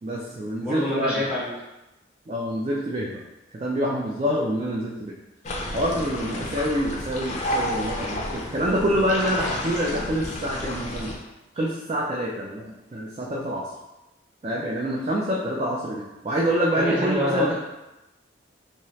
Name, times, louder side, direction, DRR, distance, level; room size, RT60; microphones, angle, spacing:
voice 1, 0.0-1.2 2.3-3.2 3.5-5.1 5.7-11.1 11.5-13.7 14.4-17.5, equal, 30° right, -4 dB, 0.3 m, -26 dB
voice 2, 0.6-1.5 16.8-17.6, equal, 5° right, -7 dB, 0.7 m, -26 dB
sound 1, 5.4-11.1, left 1 dB, 35° left, 0.4 m, -31 dB
2.8 x 2.3 x 3.1 m, 0.98 s
head